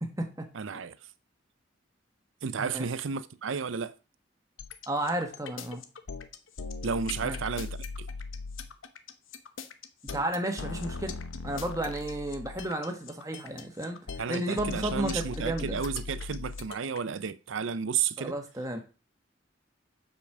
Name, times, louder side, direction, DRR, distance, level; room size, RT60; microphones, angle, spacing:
voice 1, 0.0-0.8 2.6-2.8 4.9-5.8 7.2-7.4 10.1-11.1 11.4-14.0 14.3-15.8 18.2-18.8, right 1 dB, 15° right, 1.4 m, -33 dB
voice 2, 0.5-1.0 2.4-3.9 6.8-8.1 14.2-18.4, right 6 dB, 80° right, 0.6 m, -32 dB
sound 1, 4.6-17.0, left 4 dB, 90° left, 0.9 m, -39 dB
7.2 x 5.2 x 6.0 m
head